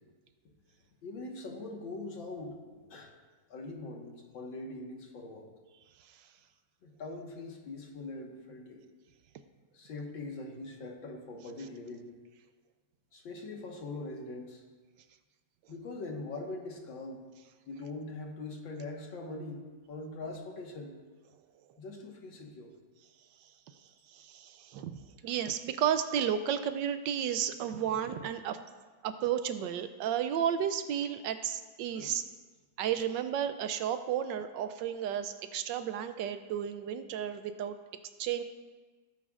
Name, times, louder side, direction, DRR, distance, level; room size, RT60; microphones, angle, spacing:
voice 1, 1.0-2.6 2.9-3.1 3.5-5.5 6.8-8.8 9.7-12.1 13.1-14.6 15.7-17.2 17.7-20.9 21.8-22.7 31.9-32.1, left 2 dB, 90° left, 0 dB, 2.3 m, -42 dB
voice 2, 24.1-28.6 29.0-32.2 32.8-37.7 38.2-38.4, right 9 dB, 80° right, 10 dB, 1.2 m, -32 dB
17.5 x 9.1 x 2.5 m, 1.4 s
omnidirectional pair, 2.0 m